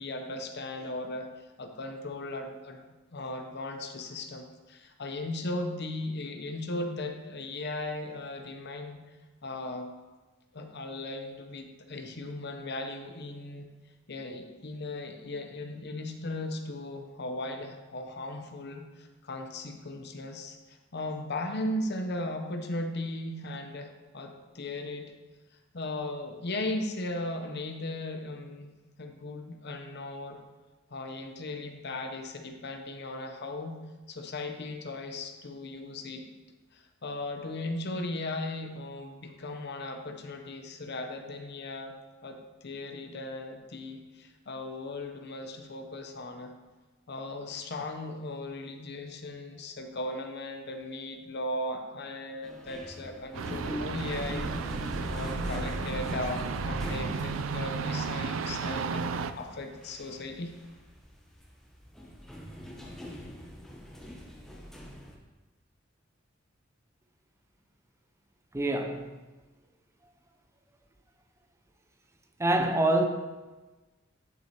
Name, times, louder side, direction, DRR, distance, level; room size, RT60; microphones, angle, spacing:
voice 1, 0.0-2.8 3.1-9.0 9.4-9.9 10.5-13.7 14.1-25.1 25.7-28.7 29.0-30.4 30.9-33.8 34.1-36.3 36.7-42.0 42.2-46.5 47.1-54.5 55.0-59.1 59.4-60.5, left 2 dB, 55° left, 5 dB, 0.8 m, -37 dB
sound 1, 52.4-65.1, equal, ahead, 1.0 m, -40 dB
sound 2, 53.3-59.3, right 5 dB, 85° right, 0.4 m, -34 dB
voice 2, 68.5-69.2 72.4-73.0, right 1 dB, 15° right, 5 dB, 0.5 m, -25 dB
10.5 x 5.9 x 2.9 m, 1.2 s
head